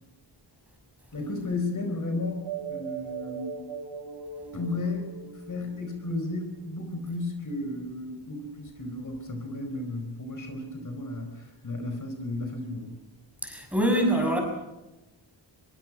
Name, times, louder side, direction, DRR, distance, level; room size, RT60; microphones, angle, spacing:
voice 1, 1.1-3.6 4.5-5.2 5.5-12.9, left 2 dB, 45° left, 4 dB, 4.6 m, -33 dB
sound 1, 2.4-6.4, right 6 dB, 85° right, 2.4 m, -39 dB
voice 2, 13.4-14.4, right 1 dB, 5° right, 2 dB, 6.5 m, -24 dB
24.5 x 23.5 x 6.3 m, 1.0 s
wide cardioid pair, 150°, 44 cm